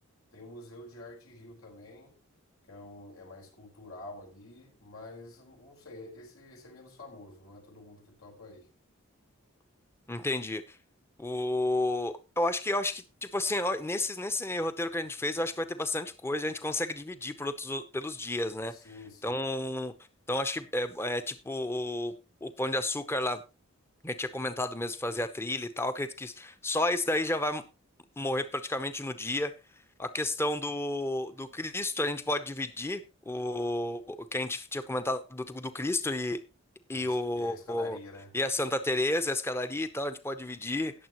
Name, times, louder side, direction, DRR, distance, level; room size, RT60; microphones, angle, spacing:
voice 1, 0.3-2.2 2.6-8.7 18.7-19.5 36.9-38.4, left 2 dB, 85° left, 0 dB, 4.5 m, -48 dB
voice 2, 10.1-10.6 11.2-18.7 19.2-19.9 20.3-22.1 22.4-23.4 24.0-27.6 28.2-29.5 30.0-36.4 36.9-38.0 38.3-40.9, left 1 dB, 10° left, 10 dB, 0.7 m, -31 dB
18.5 x 7.2 x 3.0 m, 0.29 s
head